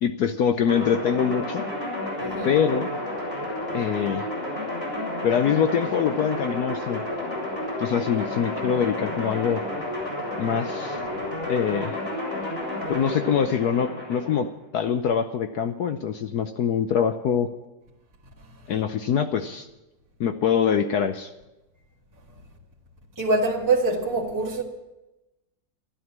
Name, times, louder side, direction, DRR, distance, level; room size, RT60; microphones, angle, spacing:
voice 1, 0.0-1.6 2.4-2.9 3.7-4.2 5.2-7.0 7.8-9.6 10.4-11.0 11.5-11.9 12.9-17.5 18.7-19.7 20.2-21.3, left 7 dB, 65° left, 1.1 m, -24 dB
sound 1, 0.6-14.4, left 1 dB, 30° left, 7.0 m, -31 dB
voice 2, 2.2-2.5 11.1-11.2 23.2-24.6, right 3 dB, 10° right, 1.7 m, -24 dB
12.5 x 11.5 x 7.4 m
omnidirectional pair, 2.0 m